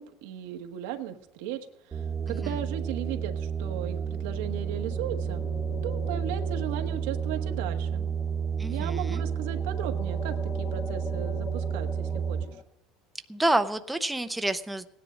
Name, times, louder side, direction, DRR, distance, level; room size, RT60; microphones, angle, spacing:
voice 1, 0.0-5.4 5.8-8.1 8.7-12.6, right 10 dB, 85° right, 5 dB, 1.3 m, -37 dB
sound 1, 1.9-12.4, right 7 dB, 25° right, 1.1 m, -31 dB
sound 2, 3.8-12.6, left 6 dB, 40° left, 1.1 m, -44 dB
voice 2, 8.6-9.2 13.3-14.9, right 1 dB, 5° right, 8 dB, 0.6 m, -28 dB
16.5 x 10.0 x 5.1 m, 0.87 s
cardioid pair, 145°, 0 cm